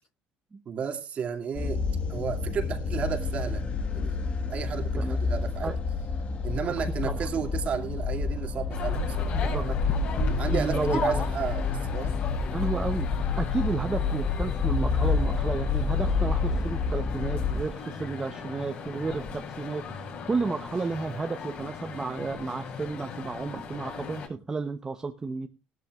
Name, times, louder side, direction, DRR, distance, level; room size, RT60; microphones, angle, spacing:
voice 1, 0.7-1.8 2.1-3.6 3.9-4.2 4.5-5.7 6.4-9.8 10.4-12.2, right 7 dB, 45° right, 3 dB, 2.4 m, -33 dB
sound 1, 1.5-17.6, left 5 dB, 40° left, 1.4 m, -29 dB
sound 2, 8.7-24.3, left 4 dB, 55° left, 6.4 m, -36 dB
voice 2, 9.3-9.7 10.5-11.2 12.5-13.1 13.4-25.5, right 4 dB, 20° right, 6 dB, 0.8 m, -32 dB
18.0 x 13.0 x 2.4 m, 0.29 s
cardioid pair, 125°, 3 cm